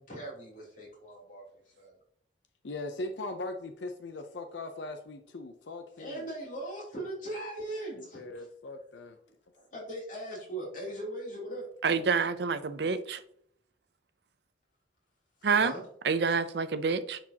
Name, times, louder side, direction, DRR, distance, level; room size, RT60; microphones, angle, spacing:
voice 1, 0.0-1.4 1.7-1.9 6.0-8.5 9.5-11.7 15.5-15.8, right 1 dB, 45° left, -4 dB, 3.1 m, -39 dB
voice 2, 2.6-6.3 7.9-9.2, left 2 dB, 70° left, 6 dB, 0.6 m, -40 dB
voice 3, 11.8-13.2 15.4-15.7 16.0-17.2, right 5 dB, 60° right, 13 dB, 0.6 m, -27 dB
9.8 x 4.5 x 2.8 m, 0.66 s
head